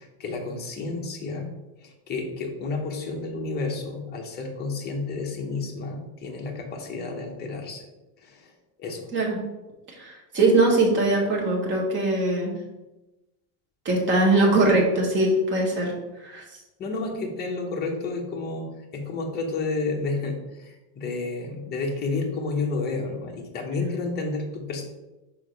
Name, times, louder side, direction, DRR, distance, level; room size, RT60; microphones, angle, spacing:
voice 1, 0.0-1.5 1.8-7.9 8.2-8.5 8.8-9.1 16.8-24.9, left 3 dB, 20° left, 0 dB, 0.9 m, -31 dB
voice 2, 10.0-12.5 13.8-15.9 16.2-16.6, right 2 dB, 25° right, -2 dB, 1.4 m, -21 dB
4.9 x 4.5 x 5.1 m, 1.0 s
cardioid pair, 180°, 44 cm